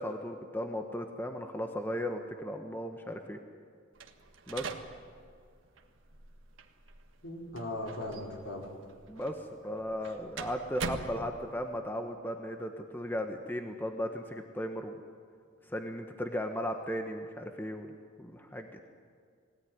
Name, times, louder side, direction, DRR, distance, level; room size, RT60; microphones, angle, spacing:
voice 1, 0.0-3.4 4.5-4.7 9.1-9.4 9.6-15.0 15.7-17.9 18.2-18.8, equal, 10° left, 4 dB, 1.2 m, -36 dB
sound 1, 4.0-11.8, right 4 dB, 80° right, 1.6 m, -44 dB
voice 2, 7.2-8.6 10.0-10.2, left 1 dB, 70° left, -1 dB, 4.8 m, -38 dB
21.5 x 17.0 x 9.6 m, 2.1 s
head